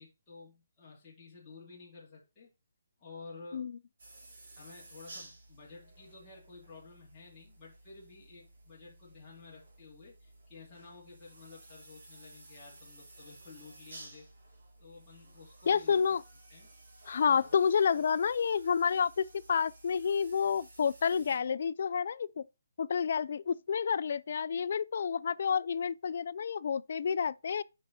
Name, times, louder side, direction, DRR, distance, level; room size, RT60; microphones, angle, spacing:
voice 1, 0.0-2.5 3.0-3.7 4.5-14.2 14.8-16.0 16.5-16.7 17.4-17.5, left 4 dB, 10° left, 2.6 m, -52 dB
sound 1, 4.0-21.4, right 2 dB, 55° right, 3.5 m, -55 dB
voice 2, 15.7-16.2 17.1-22.4 22.8-27.6, left 6 dB, 40° left, 0.4 m, -29 dB
8.3 x 5.5 x 4.1 m
hypercardioid pair, 175°, 0 cm